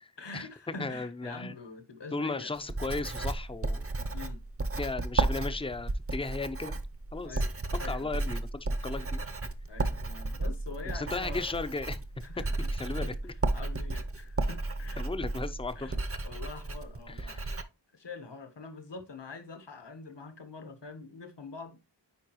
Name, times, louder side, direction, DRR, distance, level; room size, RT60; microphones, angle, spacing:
voice 1, 0.2-2.5 4.1-4.4 7.2-7.5 7.8-8.1 9.7-11.5 12.2-12.5 13.0-13.2 13.5-15.3 15.7-15.9 16.2-17.4 17.9-22.0, left 4 dB, 70° left, 1.3 m, -45 dB
voice 2, 0.8-1.5 2.1-3.9 4.8-6.8 7.1-7.4 7.8-9.2 10.8-12.0 12.4-12.5 12.7-13.3 15.0-15.9 17.1-17.6, left 3 dB, 15° left, 0.5 m, -36 dB
Writing, 2.5-17.6, right 2 dB, 30° right, 0.7 m, -33 dB
9.4 x 4.6 x 3.0 m
wide cardioid pair, 65°, 44 cm